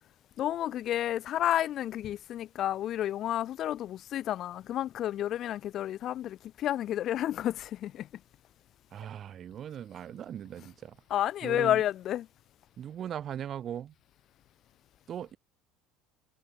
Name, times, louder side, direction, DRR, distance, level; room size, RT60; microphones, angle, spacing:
voice 1, 0.4-8.1 11.1-12.3, left 12 dB, 55° left, 0.9 m, -31 dB
voice 2, 8.9-11.0 11.4-11.8 12.8-13.9 15.1-15.4, right 9 dB, 45° right, 5.7 m, -39 dB
supercardioid pair, 95°, 0 cm